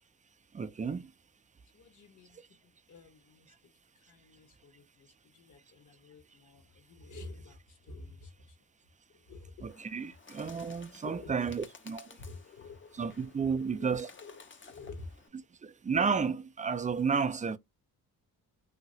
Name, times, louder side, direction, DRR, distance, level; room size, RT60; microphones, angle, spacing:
voice 1, 0.5-1.1 9.6-12.2 13.0-14.1 15.6-17.6, right 5 dB, 20° right, 0.4 m, -32 dB
voice 2, 1.7-8.6 9.1-9.7 11.0-11.5 12.2-15.2, left 3 dB, 50° left, 1.2 m, -50 dB
Bird, 9.7-15.3, left 5 dB, 30° left, 0.7 m, -55 dB
2.8 x 2.8 x 2.7 m
cardioid pair, 85°, 37 cm